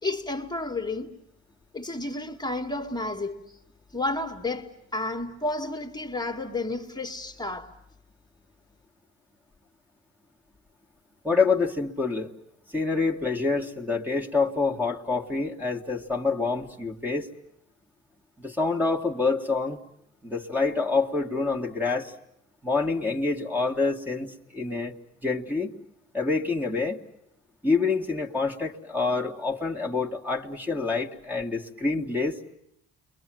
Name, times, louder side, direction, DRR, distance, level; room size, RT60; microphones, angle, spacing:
voice 1, 0.0-1.2 1.7-3.4 3.9-7.7, left 2 dB, 15° left, 1.8 m, -31 dB
voice 2, 11.2-12.3 12.7-17.3 18.4-19.8 20.2-22.1 22.6-24.9 25.2-25.7 26.1-27.0 27.6-32.4, left 4 dB, 5° right, 1.9 m, -27 dB
29.5 x 23.0 x 7.6 m
cardioid pair, 90°, 30 cm